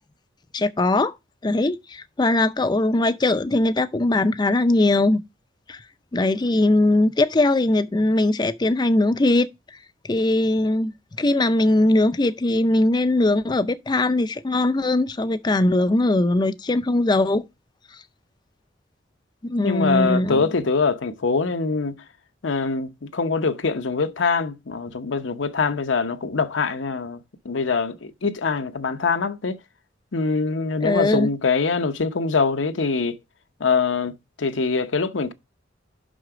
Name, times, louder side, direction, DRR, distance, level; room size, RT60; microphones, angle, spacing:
voice 1, 0.5-1.1 1.4-5.2 5.7-5.8 6.1-9.5 10.0-17.4 19.4-20.5 30.8-31.3, left 2 dB, 25° left, 0.4 m, -20 dB
voice 2, 19.6-21.9 22.4-27.2 27.4-29.6 30.1-33.2 33.6-35.3, left 4 dB, 80° left, 0.8 m, -23 dB
6.2 x 5.8 x 4.9 m
head